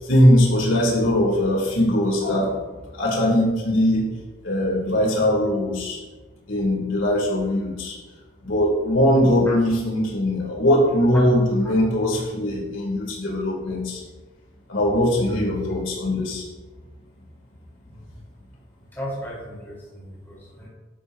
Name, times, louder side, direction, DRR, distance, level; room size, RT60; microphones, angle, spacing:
voice 1, 0.0-2.6 2.9-4.0 4.4-6.0 6.5-7.9 8.4-14.0 14.7-16.4, left 1 dB, 75° left, -3 dB, 3.1 m, -20 dB
voice 2, 18.9-20.7, equal, 10° left, -7 dB, 3.8 m, -36 dB
12.5 x 12.0 x 2.8 m, 1.3 s
head